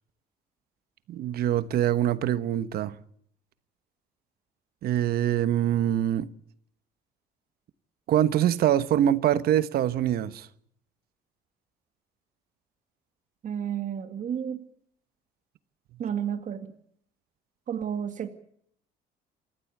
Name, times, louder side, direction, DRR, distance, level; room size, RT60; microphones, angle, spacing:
voice 1, 1.1-3.0 4.8-6.3 8.1-10.5, right 11 dB, 65° right, 1.2 m, -24 dB
voice 2, 13.4-14.6 16.0-16.7 17.7-18.3, right 8 dB, 50° right, 2.1 m, -31 dB
27.0 x 14.5 x 8.5 m
cardioid pair, 110°, 17 cm